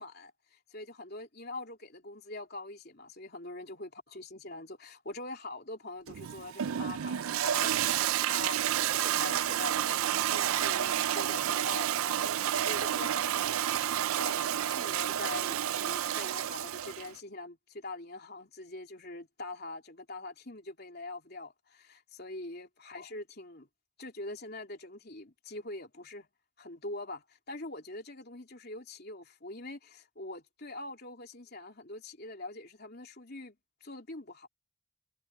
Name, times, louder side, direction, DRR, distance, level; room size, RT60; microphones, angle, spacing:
voice 1, 0.0-7.9 8.2-8.6 8.9-13.6 14.2-14.4 14.7-23.7 24.0-26.3 26.6-33.6 33.8-34.5, left 2 dB, 50° left, 3.5 m, -43 dB
Toilet flush, 6.1-17.1, right 10 dB, 85° right, 0.4 m, -30 dB
head